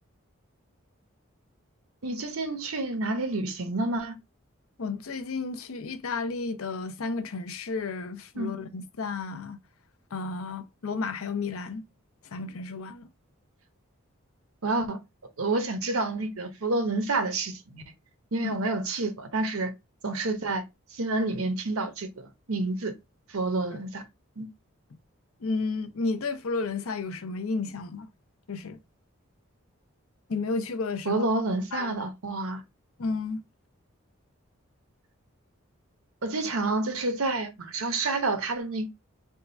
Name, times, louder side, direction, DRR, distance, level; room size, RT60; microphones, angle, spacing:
voice 1, 2.0-4.2 8.4-8.5 14.6-15.0 15.4-17.8 18.3-19.7 20.0-20.6 20.9-22.9 23.3-24.0 24.4-24.5 31.1-32.6 36.2-38.9, right 2 dB, 85° right, 0.9 m, -29 dB
voice 2, 4.8-9.6 10.1-11.8 12.3-13.1 18.4-18.5 25.4-28.1 28.5-28.8 30.3-31.3 31.7-31.9 33.0-33.4, left 4 dB, 80° left, 0.6 m, -32 dB
3.6 x 2.3 x 4.0 m
head